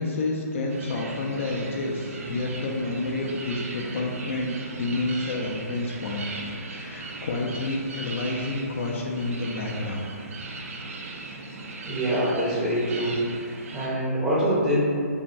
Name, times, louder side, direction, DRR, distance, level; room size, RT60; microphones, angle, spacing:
voice 1, 0.0-6.3 6.6-10.0, left 2 dB, 50° left, -1 dB, 0.3 m, -29 dB
sound 1, 0.7-13.9, right 2 dB, 55° right, 0.4 m, -38 dB
voice 2, 11.8-13.2 13.7-14.8, equal, 10° right, -9 dB, 0.6 m, -24 dB
2.6 x 2.1 x 3.1 m, 2.2 s
hypercardioid pair, 150°, 9 cm